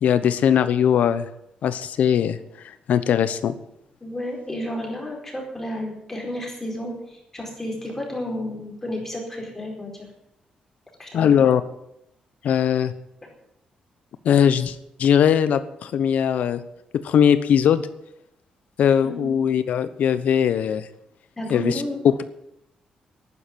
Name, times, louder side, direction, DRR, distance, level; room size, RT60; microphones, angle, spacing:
voice 1, 0.0-1.3 1.6-2.4 2.6-3.5 11.1-11.6 12.4-12.9 14.2-16.6 16.9-17.8 18.8-20.9 21.5-22.1, left 8 dB, 70° left, 13 dB, 1.0 m, -20 dB
voice 2, 4.0-10.0 11.0-11.3 19.0-19.6 21.4-22.0, left 1 dB, 15° left, -1 dB, 4.7 m, -32 dB
11.5 x 9.9 x 9.4 m, 0.80 s
cardioid pair, 145°, 3 cm